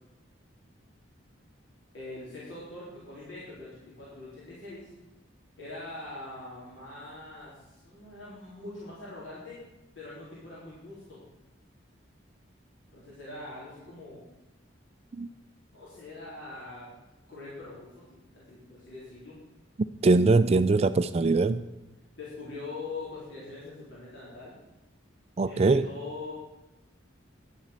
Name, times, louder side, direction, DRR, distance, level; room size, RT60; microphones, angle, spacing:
voice 1, 1.9-4.9 5.6-9.6 9.9-11.2 12.9-14.2 15.7-16.9 17.3-19.4 22.2-24.5 25.5-26.3, left 2 dB, 70° left, -8 dB, 4.1 m, -43 dB
voice 2, 20.0-21.6 25.4-25.9, right 3 dB, 30° right, 12 dB, 0.4 m, -22 dB
10.5 x 7.2 x 8.2 m, 1.0 s
head